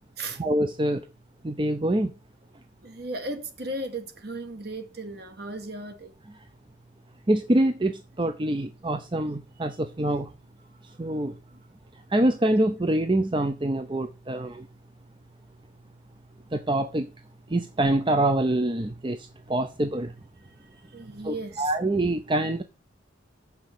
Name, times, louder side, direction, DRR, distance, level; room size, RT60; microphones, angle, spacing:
voice 1, 0.4-1.0 1.4-2.1 7.3-10.3 11.0-11.3 12.1-14.6 16.5-17.1 17.5-19.2 19.5-20.1 21.2-22.6, right 1 dB, 25° right, 0.6 m, -25 dB
voice 2, 2.8-6.1 20.9-21.7, right 2 dB, 50° right, 1.7 m, -36 dB
7.1 x 5.9 x 6.7 m
head